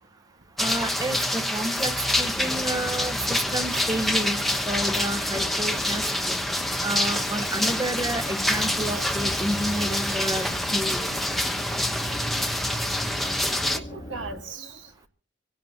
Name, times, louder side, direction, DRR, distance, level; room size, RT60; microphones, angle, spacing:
sound 1, 0.6-13.8, left 1 dB, ahead, 1.0 m, -26 dB
voice 1, 0.6-6.4 6.8-11.1, right 1 dB, 20° right, 1.0 m, -30 dB
sound 2, 2.3-14.4, left 1 dB, 30° left, 1.1 m, -39 dB
voice 2, 7.4-7.7 8.5-10.3 13.7-14.8, right 5 dB, 85° right, 1.9 m, -41 dB
24.5 x 16.0 x 2.9 m
head